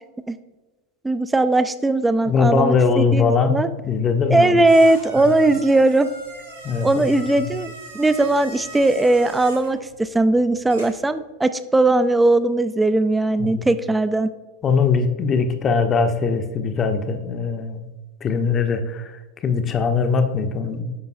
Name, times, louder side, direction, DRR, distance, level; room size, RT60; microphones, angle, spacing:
voice 1, 1.0-3.7 4.3-6.1 6.8-14.3, right 2 dB, 10° right, 12 dB, 0.3 m, -19 dB
voice 2, 2.3-4.7 6.6-7.1 7.4-7.5 13.4-13.7 14.6-17.9 18.2-20.9, left 5 dB, 25° left, 7 dB, 0.6 m, -21 dB
sound 1, 3.9-11.1, right 2 dB, 80° right, 1.8 m, -41 dB
9.6 x 5.3 x 2.5 m, 1.2 s
figure-of-eight pair, 85°, 0 cm